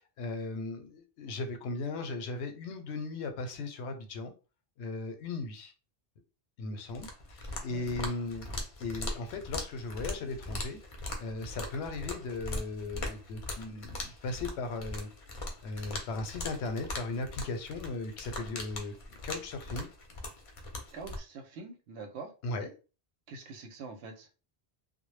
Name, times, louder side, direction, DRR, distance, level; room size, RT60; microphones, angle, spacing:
voice 1, 0.0-4.3 4.8-5.7 6.6-8.5 8.8-10.8 11.2-18.9 19.2-19.9 22.4-22.7, left 3 dB, 90° left, 0.9 m, -37 dB
sound 1, 6.9-21.2, left 2 dB, 45° left, 0.4 m, -40 dB
voice 2, 20.9-22.3 23.3-24.3, right 4 dB, 90° right, 0.9 m, -45 dB
2.0 x 2.0 x 3.1 m
omnidirectional pair, 1.1 m